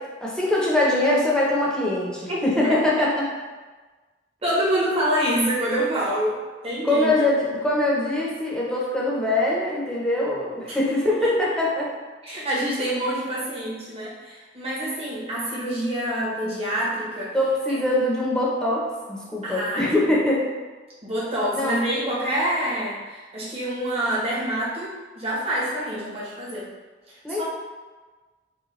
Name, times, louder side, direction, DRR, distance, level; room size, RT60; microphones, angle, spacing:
voice 1, 0.0-3.3 6.8-11.9 17.3-20.5 21.5-21.7 27.2-27.4, left 1 dB, 5° left, -5 dB, 0.7 m, -23 dB
voice 2, 2.3-2.8 4.4-7.1 10.7-10.8 11.2-11.3 12.2-17.4 17.7-17.8 19.4-20.0 21.0-26.7 27.1-27.4, right 1 dB, 35° right, -7 dB, 1.0 m, -26 dB
4.9 x 2.2 x 3.1 m, 1.3 s
head